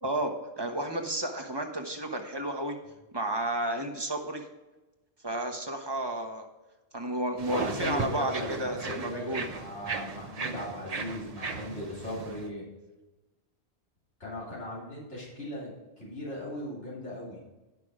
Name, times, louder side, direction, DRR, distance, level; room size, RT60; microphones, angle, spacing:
voice 1, 0.0-2.8 3.1-4.4 5.2-6.5 6.9-9.5, right 1 dB, 25° right, 3 dB, 1.2 m, -32 dB
sound 1, 7.4-12.5, right 4 dB, 40° right, 0.8 m, -36 dB
voice 2, 7.5-12.6 14.2-17.4, left 1 dB, 85° left, -6 dB, 3.3 m, -38 dB
11.0 x 5.9 x 5.0 m, 1.1 s
omnidirectional pair, 1.1 m